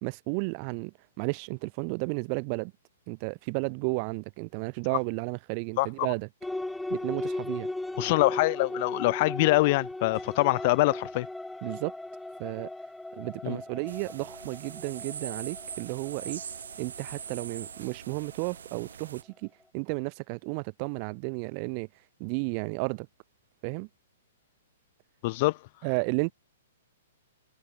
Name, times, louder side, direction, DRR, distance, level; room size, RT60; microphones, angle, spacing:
voice 1, 0.0-2.7 3.1-6.3 6.9-7.7 11.6-11.9 12.4-12.7 13.2-16.4 16.8-21.9 22.2-23.1 23.6-23.9 25.8-26.3, right 37 dB, 40° right, 1.7 m, -33 dB
sound 1, 6.4-18.4, left 2 dB, 5° left, 0.9 m, -38 dB
voice 2, 8.0-11.3 13.4-13.6 25.2-25.6, left 22 dB, 45° left, 1.0 m, -24 dB
sound 2, 13.9-19.2, right 7 dB, 80° right, 1.4 m, -42 dB
hypercardioid pair, 140°, 0 cm